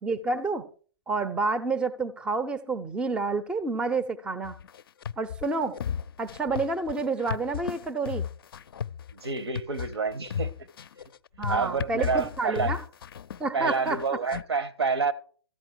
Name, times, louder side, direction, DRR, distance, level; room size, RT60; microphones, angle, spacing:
voice 1, 0.0-0.6 1.1-4.6 5.2-5.8 6.2-8.3 11.4-12.8 13.4-14.0, right 3 dB, 5° right, 0.5 m, -29 dB
sound 1, 4.4-14.4, left 8 dB, 60° left, 0.4 m, -34 dB
voice 2, 9.1-10.5 11.5-12.8 13.5-15.1, right 4 dB, 75° right, 1.1 m, -28 dB
14.0 x 9.1 x 4.7 m
figure-of-eight pair, 125°, 14 cm